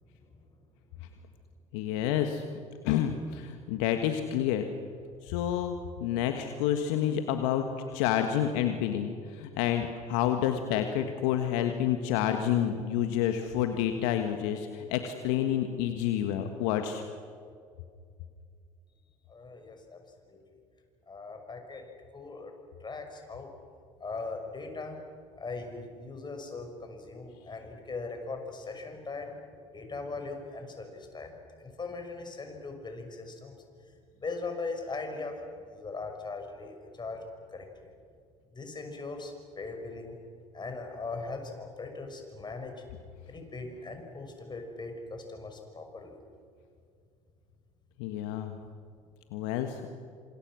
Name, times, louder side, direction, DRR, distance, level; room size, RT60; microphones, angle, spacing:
voice 1, 1.7-2.4 2.8-4.6 5.2-5.7 6.0-17.0 48.0-48.5 49.3-49.9, left 10 dB, 65° left, 6 dB, 1.7 m, -29 dB
voice 2, 19.3-20.0 20.3-20.4 21.1-22.5 22.8-23.5 24.0-25.0 25.4-33.5 34.2-37.2 37.5-37.7 38.5-40.2 40.5-42.8 43.3-46.2, left 3 dB, 25° left, 4 dB, 6.1 m, -40 dB
27.5 x 27.0 x 6.4 m, 2.2 s
hypercardioid pair, 65°, 18 cm